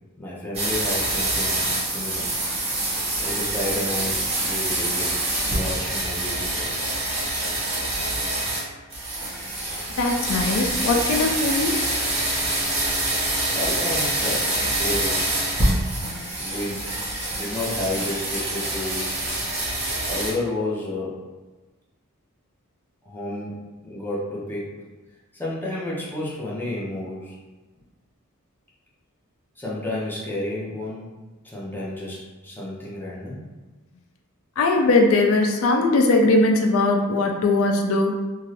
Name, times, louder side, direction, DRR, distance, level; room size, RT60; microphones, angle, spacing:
voice 1, 0.2-2.4 3.2-6.9 13.5-15.3 16.4-17.0 17.3-19.2 20.1-21.3 23.1-24.8 25.3-27.3 29.6-33.4, left 1 dB, 10° left, -6 dB, 0.6 m, -31 dB
sound 1, 0.5-8.6 8.9-20.3, right 1 dB, 30° right, 1.0 m, -26 dB
voice 2, 10.0-11.9 16.0-16.2 34.6-38.2, left 2 dB, 80° left, 3 dB, 0.4 m, -20 dB
2.6 x 2.4 x 3.1 m, 1.2 s
head